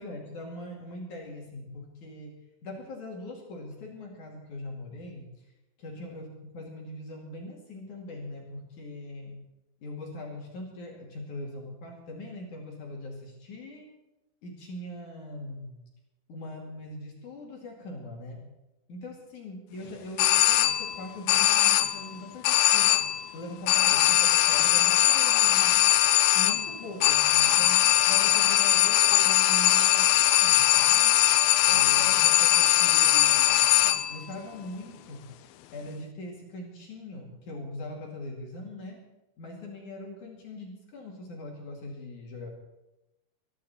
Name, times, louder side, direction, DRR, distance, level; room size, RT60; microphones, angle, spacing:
voice 1, 0.0-5.3 5.8-6.3 6.5-9.4 9.8-13.8 14.4-15.8 16.3-18.4 18.9-22.9 23.3-25.9 26.3-27.8 28.1-31.2 31.6-33.7 34.1-35.3 35.7-39.0 39.4-42.5, left 1 dB, 50° left, -1 dB, 3.5 m, -41 dB
sound 1, 20.2-21.0 21.3-22.1 22.4-23.3 23.7-34.2, left 14 dB, 85° left, 2.1 m, -21 dB
24.0 x 11.5 x 4.4 m, 0.97 s
omnidirectional pair, 5.0 m